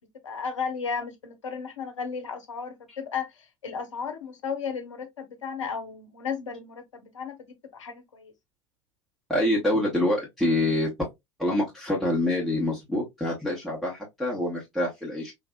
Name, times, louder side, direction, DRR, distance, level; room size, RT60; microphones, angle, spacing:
voice 1, 0.2-7.4 7.7-8.3, left 6 dB, 70° left, 0.8 m, -34 dB
voice 2, 9.3-10.9 11.4-15.3, left 1 dB, ahead, 1.1 m, -26 dB
3.8 x 2.6 x 2.2 m
figure-of-eight pair, 80°, 16 cm